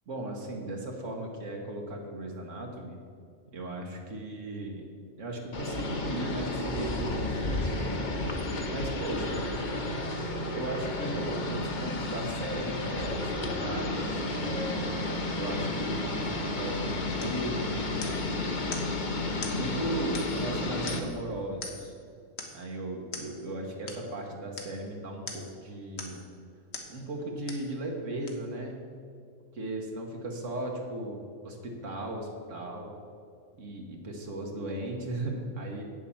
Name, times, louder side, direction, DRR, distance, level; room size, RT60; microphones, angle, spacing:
voice 1, 0.1-3.0 3.5-8.0 8.7-9.5 10.5-15.1 15.4-17.9 19.5-21.9 22.5-26.2 26.9-28.8 29.5-32.9 33.6-35.8, right 1 dB, 80° right, 0 dB, 1.7 m, -37 dB
sound 1, 5.5-21.0, left 2 dB, 40° left, 1.1 m, -32 dB
sound 2, 17.2-17.4 18.0-18.3 18.7-18.9 19.4-19.6 20.1-20.5 20.9-21.2 21.6-21.9 22.4-22.6 23.1-23.3 23.9-24.0 24.6-24.8 25.3-25.5 26.0-26.3 26.7-26.9 27.5-27.7 28.3-28.4, left 3 dB, 60° left, 1.4 m, -41 dB
8.7 x 7.5 x 7.0 m, 2.3 s
omnidirectional pair, 1.3 m